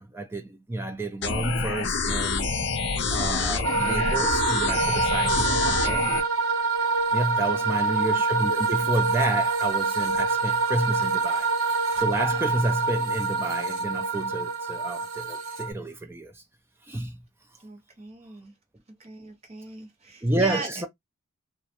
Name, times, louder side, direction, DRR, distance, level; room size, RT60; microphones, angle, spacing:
voice 1, 0.0-2.6 3.1-6.1 7.1-11.5 11.9-16.4 16.8-17.2 20.2-20.9, right 1 dB, 10° right, 0.3 m, -30 dB
sound 1, 1.2-6.2, left 4 dB, 50° left, 0.5 m, -27 dB
sound 2, 3.6-15.7, right 4 dB, 70° right, 0.8 m, -26 dB
voice 2, 7.5-8.1 17.6-18.5 19.0-20.7, right 3 dB, 30° right, 0.7 m, -38 dB
2.3 x 2.0 x 2.9 m
head